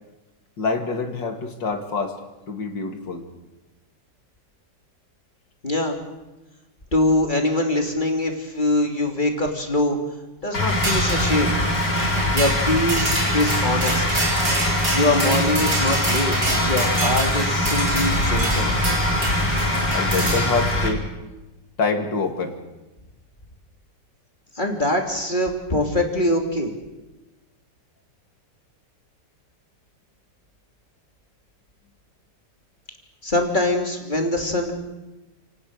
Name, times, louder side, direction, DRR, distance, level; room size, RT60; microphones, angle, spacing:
voice 1, 0.6-2.2 2.5-3.2 19.9-21.0 21.8-22.6, left 4 dB, 80° left, 5 dB, 3.0 m, -26 dB
voice 2, 5.6-6.0 6.9-10.0 10.4-11.6 12.3-14.2 14.9-16.3 16.6-18.7 24.5-26.7 33.2-34.7, left 1 dB, 25° left, 2 dB, 3.2 m, -23 dB
sound 1, 10.5-20.9, left 1 dB, 65° left, 4.5 m, -23 dB
sound 2, 10.7-20.6, right 1 dB, 85° right, 6.8 m, -27 dB
29.5 x 18.5 x 6.7 m, 1.1 s
omnidirectional pair, 1.9 m